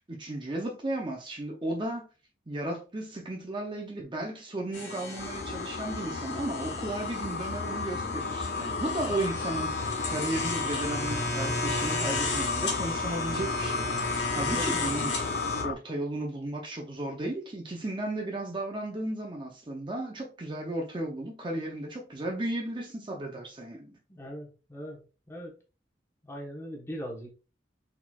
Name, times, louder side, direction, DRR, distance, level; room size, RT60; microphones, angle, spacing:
voice 1, 0.1-2.1 2.5-15.1 15.6-24.0, right 1 dB, 25° right, 0.6 m, -34 dB
sound 1, 4.7-15.6, left 2 dB, 80° left, 1.6 m, -35 dB
sound 2, 5.2-15.7, left 4 dB, 60° left, 0.4 m, -33 dB
voice 2, 24.1-25.0 25.3-25.5 26.2-27.3, equal, 15° left, 1.1 m, -40 dB
4.4 x 4.0 x 2.3 m
head